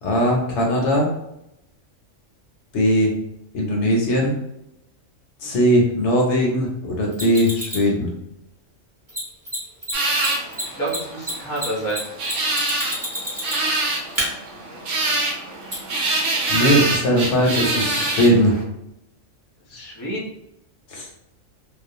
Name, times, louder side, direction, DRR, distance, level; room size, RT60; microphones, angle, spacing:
voice 1, 0.0-1.1 2.7-3.1 3.5-4.3 5.4-8.1 16.1-16.2 16.5-18.6 20.9-21.1, equal, 65° left, -1 dB, 0.9 m, -19 dB
Mechanisms, 7.1-7.9 9.1-9.2 9.5-9.6 9.8-9.9 10.2-13.8 14.2-14.3 15.7-15.8, equal, 15° right, 0.8 m, -28 dB
sound 1, 9.9-18.6, right 2 dB, 70° right, 0.9 m, -25 dB
voice 2, 10.7-12.0 19.7-20.2, right 1 dB, 20° left, -4 dB, 0.4 m, -28 dB
2.4 x 2.1 x 2.7 m, 0.81 s
omnidirectional pair, 1.3 m